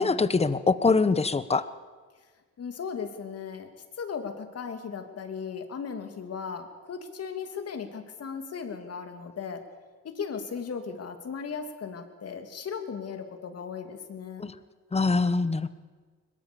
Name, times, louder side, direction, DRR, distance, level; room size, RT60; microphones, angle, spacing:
voice 1, 0.0-1.7 14.4-14.5 14.9-15.7, left 4 dB, 20° left, 14 dB, 1.1 m, -23 dB
voice 2, 2.6-3.7 4.0-9.6 10.0-14.5, left 6 dB, 55° left, 6 dB, 2.9 m, -37 dB
22.0 x 21.5 x 7.1 m, 1.4 s
cardioid pair, 90°, 30 cm